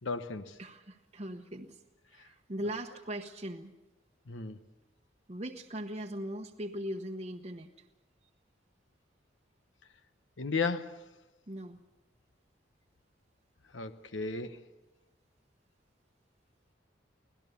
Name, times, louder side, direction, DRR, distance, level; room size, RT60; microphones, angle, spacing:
voice 1, 0.0-0.6 4.3-4.6 10.4-11.0 13.7-14.6, left 4 dB, 85° left, 1.0 m, -34 dB
voice 2, 0.6-1.8 2.1-3.7 5.3-7.8 11.5-11.8, equal, 35° right, 0.9 m, -40 dB
25.0 x 17.5 x 7.0 m
head